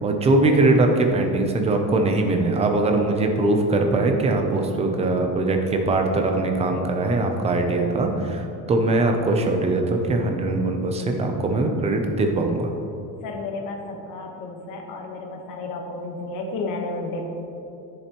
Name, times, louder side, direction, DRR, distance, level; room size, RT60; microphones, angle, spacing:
voice 1, 0.0-12.7, right 2 dB, 15° right, 4 dB, 0.5 m, -21 dB
voice 2, 13.2-17.3, left 3 dB, 55° left, 2 dB, 1.2 m, -32 dB
10.0 x 7.1 x 3.0 m, 2.9 s
cardioid pair, 175°, 38 cm